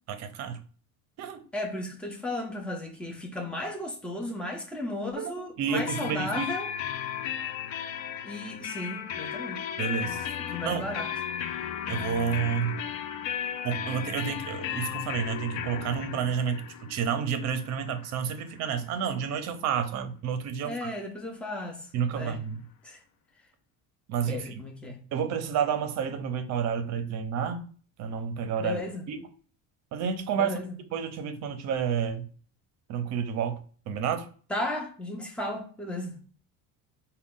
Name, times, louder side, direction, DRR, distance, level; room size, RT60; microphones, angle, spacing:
voice 1, 0.1-0.6 1.2-1.4 5.2-6.5 9.8-10.9 11.9-12.8 13.6-20.9 21.9-22.6 24.1-24.4 25.1-28.8 29.1-29.3 29.9-30.6 30.9-32.2 32.9-34.3, right 7 dB, 45° right, 0.6 m, -30 dB
voice 2, 1.5-6.7 8.2-9.6 10.4-11.1 20.6-21.9 22.1-22.4 22.8-23.0 24.3-25.0 28.6-29.0 30.3-30.7 34.5-36.1, left 1 dB, 5° left, 0.4 m, -35 dB
sound 1, 5.9-19.4, left 9 dB, 60° left, 0.5 m, -35 dB
5.0 x 2.2 x 3.6 m
cardioid pair, 175°, 37 cm